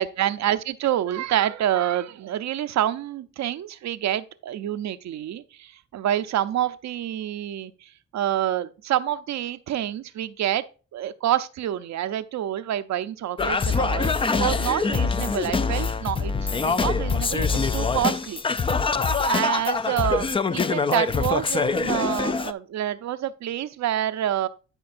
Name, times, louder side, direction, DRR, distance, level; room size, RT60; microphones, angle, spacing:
voice 1, 0.0-10.6 10.9-18.4 19.2-24.5, right 11 dB, 70° right, 0.6 m, -27 dB
Singing, 13.4-22.5, left 4 dB, 20° left, 0.3 m, -24 dB
12.5 x 5.2 x 2.5 m
cardioid pair, 100°, 29 cm